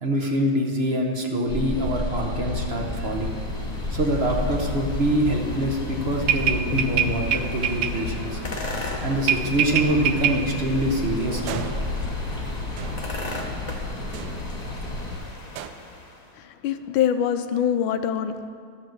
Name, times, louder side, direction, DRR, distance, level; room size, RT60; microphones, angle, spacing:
voice 1, 0.0-3.4 3.9-8.4 9.0-11.6, right 1 dB, 45° right, 1 dB, 0.8 m, -25 dB
sound 1, 1.5-15.2, left 2 dB, ahead, 1.2 m, -31 dB
sound 2, 2.3-16.3, left 2 dB, 45° left, 0.5 m, -37 dB
sound 3, 6.3-7.9 9.3-10.4 11.5-12.3 12.8-13.2 14.1-14.5 15.6-15.7, right 9 dB, 85° right, 1.4 m, -25 dB
voice 2, 16.4-18.5, left 9 dB, 80° left, 9 dB, 1.4 m, -24 dB
12.0 x 5.6 x 7.7 m, 2.1 s
omnidirectional pair, 2.3 m